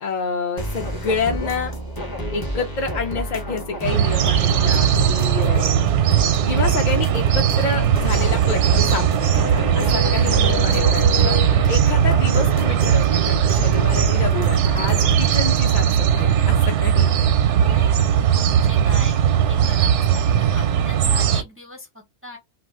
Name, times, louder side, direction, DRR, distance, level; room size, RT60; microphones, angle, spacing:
voice 1, 0.0-1.7 2.3-5.8 6.5-11.3 11.7-17.1, left 5 dB, 55° left, 0.6 m, -28 dB
sound 1, 0.6-15.3, right 1 dB, 20° left, 0.8 m, -30 dB
sound 2, 3.8-21.4, right 9 dB, 85° right, 0.9 m, -18 dB
Wind, 8.1-12.4 12.7-12.8, left 11 dB, 75° left, 1.0 m, -32 dB
voice 2, 17.5-18.2 18.4-19.2 19.5-22.4, left 2 dB, 15° right, 0.4 m, -39 dB
2.4 x 2.2 x 3.5 m
omnidirectional pair, 1.2 m